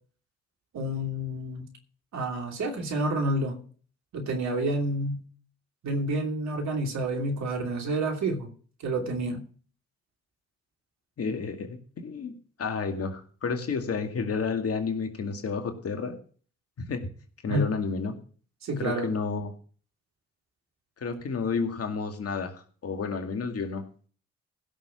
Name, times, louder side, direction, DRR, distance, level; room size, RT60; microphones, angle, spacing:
voice 1, 0.7-1.7 2.1-3.5 4.1-5.2 5.8-8.5 8.8-9.4 17.5-17.7 18.6-19.1, right 1 dB, 60° right, 2 dB, 3.0 m, -29 dB
voice 2, 11.2-12.3 12.6-16.2 16.9-17.1 17.4-18.2 18.8-19.5 21.0-23.8, left 5 dB, 50° left, 5 dB, 2.2 m, -31 dB
16.0 x 6.5 x 5.8 m, 0.43 s
hypercardioid pair, 40°, 31 cm